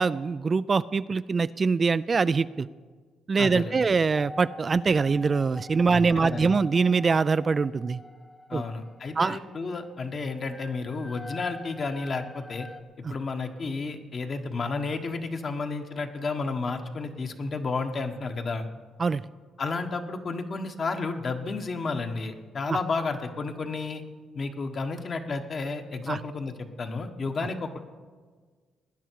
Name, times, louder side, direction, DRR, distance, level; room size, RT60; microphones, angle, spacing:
voice 1, 0.0-2.7 3.3-8.0 8.5-8.6 9.2-9.4 13.0-13.1 19.0-19.2 22.7-22.8 26.1-26.2, right 4 dB, 35° right, 15 dB, 0.3 m, -23 dB
voice 2, 3.4-3.9 5.9-6.6 8.5-12.7 13.1-18.7 19.6-24.0 24.3-26.5 26.8-27.8, left 4 dB, 45° left, 6 dB, 1.3 m, -32 dB
sound 1, 4.1-12.8, left 1 dB, 15° left, 1.0 m, -45 dB
19.0 x 10.0 x 4.7 m, 1.5 s
cardioid pair, 85°, 0 cm